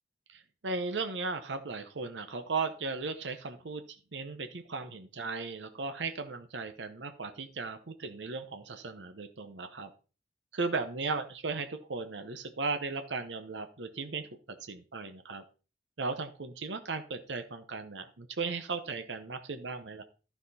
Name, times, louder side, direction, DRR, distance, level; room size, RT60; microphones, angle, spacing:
voice 1, 0.3-3.8 4.1-9.9 10.5-14.3 14.6-15.4 16.0-20.0, right 4 dB, 90° right, 8 dB, 0.9 m, -36 dB
12.0 x 5.9 x 4.2 m, 0.35 s
head